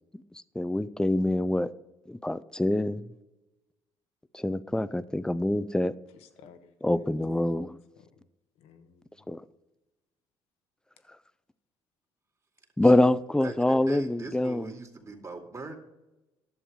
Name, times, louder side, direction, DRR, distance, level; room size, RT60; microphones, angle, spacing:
voice 1, 0.6-1.7 2.1-3.0 4.3-5.9 6.8-7.8 9.3-9.4 12.8-14.7, left 1 dB, 5° left, 15 dB, 0.6 m, -25 dB
voice 2, 6.1-7.6 8.2-8.3 8.6-9.3, left 7 dB, 80° left, 9 dB, 1.1 m, -55 dB
voice 3, 12.8-15.8, right 3 dB, 30° right, 3 dB, 2.3 m, -41 dB
11.0 x 7.2 x 5.0 m, 1.0 s
supercardioid pair, 70°, 10 cm